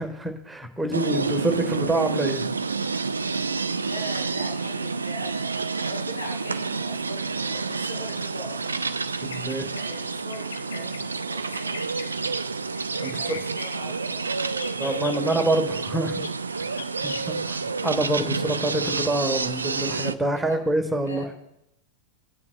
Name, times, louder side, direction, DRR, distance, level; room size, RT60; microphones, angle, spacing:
voice 1, 0.0-2.4 9.2-9.7 13.0-13.4 14.8-16.3 17.0-21.2, right 1 dB, 10° right, 5 dB, 1.3 m, -26 dB
sound 1, 0.9-20.1, right 4 dB, 75° right, 0.4 m, -29 dB
voice 2, 3.7-5.5 5.8-8.6 8.9-11.8 13.1-15.3 16.0-16.1 20.3-20.7 21.0-21.3, equal, 85° left, -2 dB, 3.1 m, -41 dB
Bird vocalization bird call bird song, 9.1-9.9 10.3-11.0 11.5-12.1 12.7-13.7 14.5-15.4 16.2-16.3 16.8-17.3, left 7 dB, 65° left, 0.7 m, -40 dB
19.0 x 9.3 x 2.3 m, 0.83 s
figure-of-eight pair, 90°, 0 cm